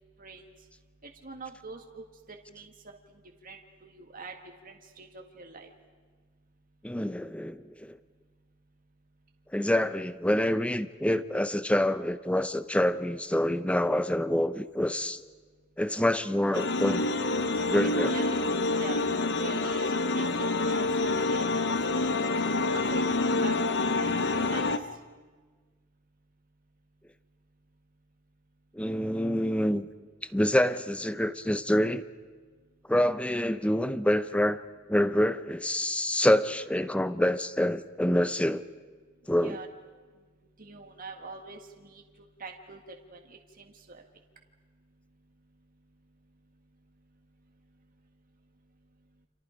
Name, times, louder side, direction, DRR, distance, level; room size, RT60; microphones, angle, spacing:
voice 1, 1.0-4.3 4.6-5.7 17.8-18.5 18.8-19.0 19.4-22.2 22.7-24.7 39.4-39.7 40.6-42.0 42.4-44.0, right 3 dB, 40° right, 3 dB, 1.7 m, -45 dB
voice 2, 6.8-8.0 9.5-15.2 15.8-17.1 17.7-18.1 28.7-29.9 30.3-32.0 32.9-34.6 34.9-38.6 39.3-39.6, left 1 dB, 5° left, 13 dB, 0.7 m, -26 dB
sound 1, 16.5-24.8, left 2 dB, 60° left, 0.9 m, -27 dB
29.5 x 27.0 x 5.1 m, 1.4 s
head